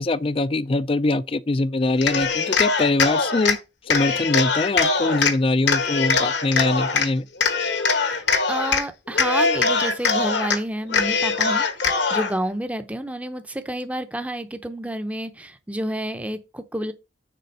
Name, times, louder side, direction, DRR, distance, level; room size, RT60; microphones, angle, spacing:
voice 1, 0.0-3.6 3.9-7.2, left 2 dB, 30° left, 0.4 m, -23 dB
Cheering, 1.9-3.6 3.9-5.3 5.7-7.1 7.4-8.8 9.1-10.6 10.9-12.3, left 4 dB, 70° left, 1.3 m, -22 dB
voice 2, 8.1-16.9, right 1 dB, 5° right, 0.7 m, -29 dB
6.8 x 4.0 x 6.5 m
head